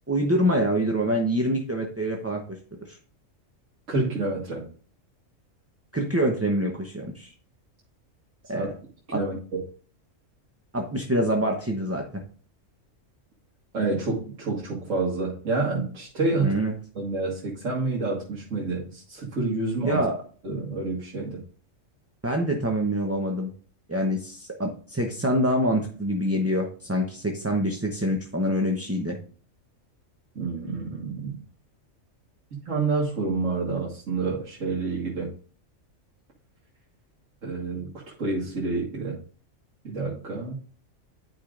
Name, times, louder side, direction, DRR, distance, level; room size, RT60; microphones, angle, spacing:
voice 1, 0.1-2.4 2.9-3.0 5.9-7.3 8.5-8.7 9.1-9.2 10.7-12.0 16.4-16.7 19.8-20.2 22.2-23.5 23.9-29.2, equal, 15° right, 1 dB, 0.6 m, -25 dB
voice 2, 3.9-4.6 8.5-8.7 9.1-9.6 13.7-16.5 17.0-20.0 20.4-21.4 30.4-31.3 32.7-35.3 37.4-37.9 38.2-39.2 39.8-40.6, right 3 dB, 80° right, -4 dB, 2.0 m, -28 dB
11.5 x 5.0 x 2.5 m, 0.43 s
omnidirectional pair, 1.3 m